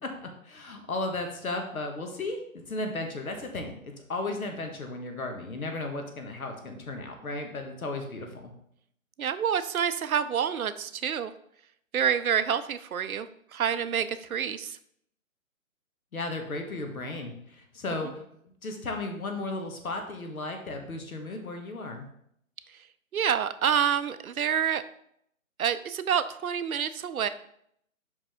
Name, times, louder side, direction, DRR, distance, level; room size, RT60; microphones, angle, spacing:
voice 1, 0.0-8.5 16.1-22.1, left 2 dB, 80° left, 4 dB, 1.5 m, -35 dB
voice 2, 9.2-11.3 11.9-14.8 23.1-24.8 25.6-27.3, right 8 dB, 80° right, 12 dB, 0.6 m, -27 dB
5.5 x 5.0 x 3.6 m, 0.70 s
hypercardioid pair, 175°, 42 cm